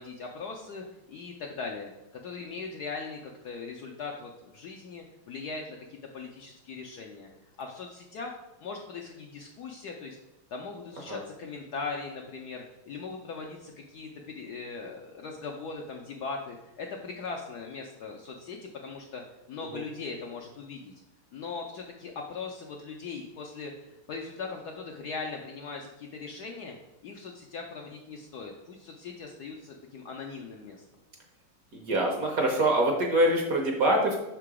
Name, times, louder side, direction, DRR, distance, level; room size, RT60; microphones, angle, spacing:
voice 1, 0.0-1.9 2.2-7.3 7.6-8.3 8.6-10.2 10.5-19.2 19.5-20.9 21.3-26.7 27.0-30.8, left 4 dB, 70° left, 1 dB, 0.9 m, -39 dB
voice 2, 31.7-34.2, right 1 dB, 55° right, 1 dB, 1.1 m, -24 dB
5.9 x 3.8 x 4.7 m, 0.96 s
omnidirectional pair, 2.2 m